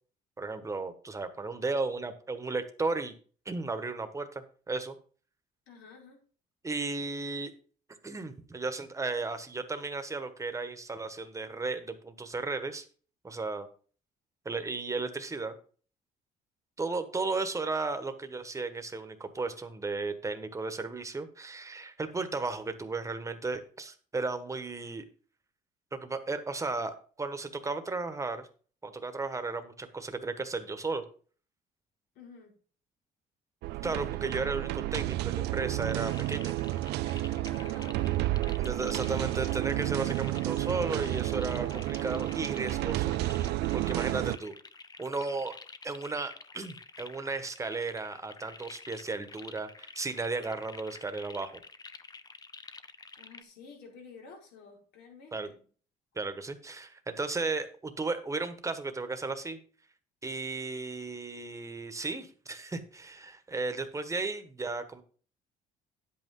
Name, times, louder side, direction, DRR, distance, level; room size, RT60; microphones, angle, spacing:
voice 1, 0.4-3.1 3.4-4.9 6.6-7.5 8.0-12.9 13.2-13.7 14.4-15.5 16.8-25.1 25.9-28.5 28.8-31.0 33.8-36.5 38.5-43.1 43.4-44.5 45.0-45.5 45.8-51.6 55.3-55.5 56.1-59.6 60.2-65.0, right 3 dB, 20° right, 9 dB, 1.4 m, -35 dB
voice 2, 5.7-6.2 32.1-32.5 37.3-38.0 53.2-55.6, left 4 dB, 80° left, 0 dB, 5.0 m, -51 dB
sound 1, 33.6-44.4, right 17 dB, 80° right, 0.4 m, -31 dB
sound 2, 35.8-53.4, left 4 dB, 25° left, 0.8 m, -49 dB
10.5 x 8.4 x 3.8 m, 0.42 s
cardioid pair, 110°, 17 cm